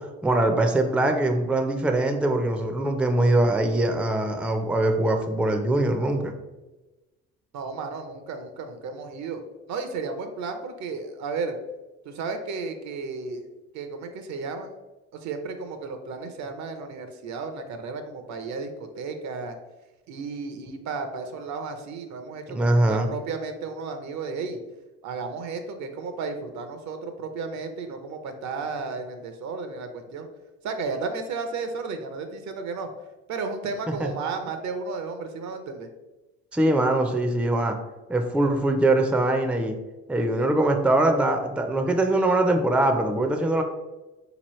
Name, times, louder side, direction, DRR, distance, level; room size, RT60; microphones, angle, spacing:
voice 1, 0.2-6.3 22.5-23.1 33.9-34.1 36.5-37.8 38.1-39.8 40.1-43.6, right 2 dB, 5° right, 4 dB, 0.4 m, -22 dB
voice 2, 7.5-9.4 9.7-11.6 12.0-13.5 13.7-14.7 15.1-19.6 20.1-24.6 25.0-30.3 30.6-32.9 33.3-35.9, right 4 dB, 65° right, 7 dB, 0.6 m, -33 dB
4.1 x 2.9 x 3.0 m, 1.1 s
supercardioid pair, 75°, 30 cm